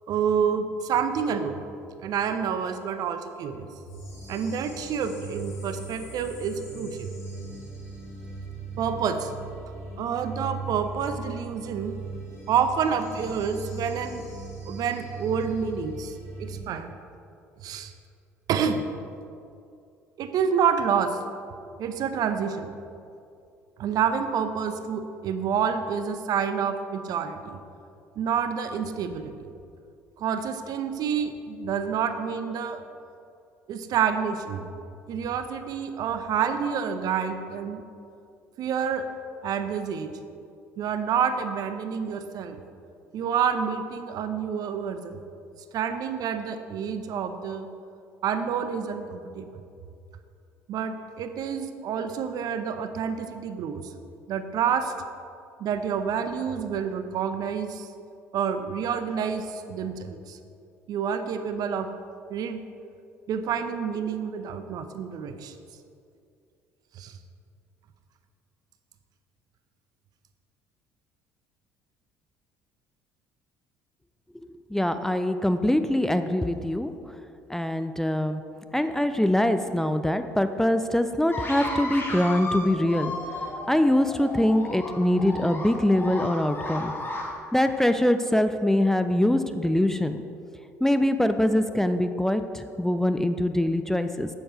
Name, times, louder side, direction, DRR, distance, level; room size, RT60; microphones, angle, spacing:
voice 1, 0.1-1.6 2.0-3.7 4.3-7.1 8.8-9.3 10.0-11.9 12.5-14.2 14.7-17.0 17.6-17.9 18.5-18.8 20.2-21.2 21.8-22.7 23.8-27.6 28.2-29.3 30.2-32.8 33.7-34.7 35.1-37.8 38.6-39.1 39.4-40.1 40.8-42.6 43.1-45.2 45.7-47.7 48.2-49.6 50.7-53.9 54.3-54.9 55.6-57.9 58.3-60.4 60.9-61.9 62.3-62.6 63.3-65.5 66.9-67.2, right 7 dB, 50° right, 9 dB, 0.7 m, -28 dB
sound 1, 3.8-16.6, right 3 dB, 80° left, 2.3 m, -39 dB
voice 2, 74.3-76.9 77.5-78.4 78.7-83.2 83.7-86.9 87.5-90.2 90.8-94.3, left 1 dB, 5° left, 9 dB, 0.5 m, -23 dB
sound 2, 81.3-87.3, left 2 dB, 25° left, 1.8 m, -34 dB
8.2 x 7.8 x 4.9 m, 2.5 s
figure-of-eight pair, 55°, 8 cm